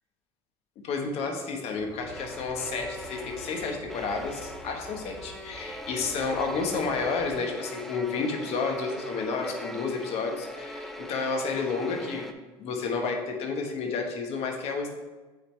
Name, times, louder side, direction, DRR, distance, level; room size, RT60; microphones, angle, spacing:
voice 1, 0.8-12.3 12.6-14.9, left 4 dB, 55° left, 2 dB, 1.2 m, -31 dB
sound 1, 1.7-7.4, equal, 40° left, 2.1 m, -48 dB
sound 2, 2.1-12.3, equal, ahead, 0.5 m, -41 dB
8.5 x 4.0 x 3.2 m, 1.2 s
supercardioid pair, 95°, 12 cm